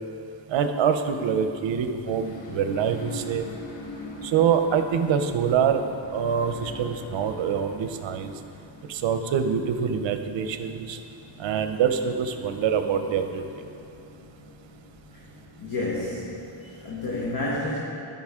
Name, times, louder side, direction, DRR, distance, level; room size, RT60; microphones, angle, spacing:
voice 1, 0.5-3.5 4.2-5.8 6.1-8.3 8.9-11.0 11.4-13.4, right 7 dB, 65° right, 8 dB, 0.7 m, -25 dB
sound 1, 2.0-16.2, left 2 dB, 65° left, 1.1 m, -44 dB
voice 2, 15.6-17.8, left 2 dB, 45° left, -6 dB, 1.4 m, -30 dB
13.5 x 5.5 x 3.6 m, 2.6 s
wide cardioid pair, 130°, 48 cm